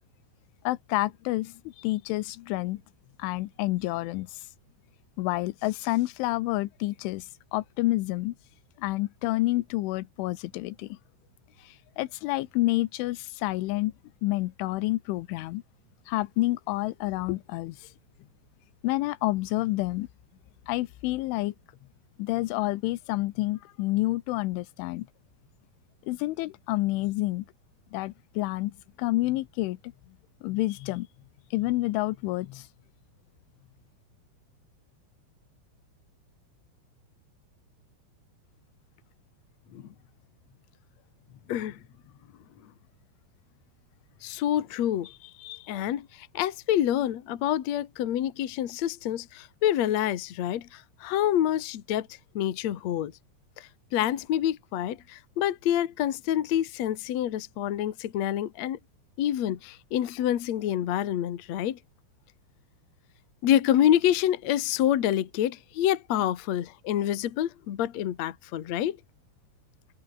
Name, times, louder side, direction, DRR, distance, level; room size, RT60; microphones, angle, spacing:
voice 1, 0.6-2.8 3.2-4.4 5.2-8.3 8.8-11.0 11.6-13.9 14.2-15.6 16.1-17.9 18.8-20.1 20.7-21.5 22.2-25.1 26.1-27.5 27.9-29.9 30.4-31.1 31.5-32.7, left 19 dB, 85° left, 3.3 m, -29 dB
voice 2, 41.5-41.8 44.2-52.1 52.3-53.1 53.6-58.8 59.2-61.8 63.4-69.0, left 11 dB, 70° left, 1.7 m, -27 dB
omnidirectional pair, 5.6 m